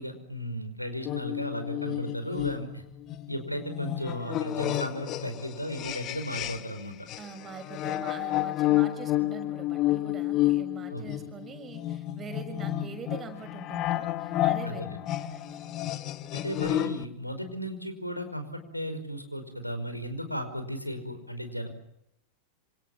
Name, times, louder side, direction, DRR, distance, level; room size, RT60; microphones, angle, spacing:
voice 1, 0.0-2.8 3.3-6.9 10.9-11.0 14.6-15.0 16.3-21.7, equal, 90° left, 8 dB, 5.2 m, -35 dB
sound 1, 1.1-6.8 7.1-17.1, left 14 dB, 35° left, 1.4 m, -30 dB
voice 2, 7.2-14.8 15.2-15.6, right 6 dB, 25° right, 7 dB, 6.1 m, -43 dB
28.0 x 27.0 x 7.5 m, 0.79 s
figure-of-eight pair, 90°, 0 cm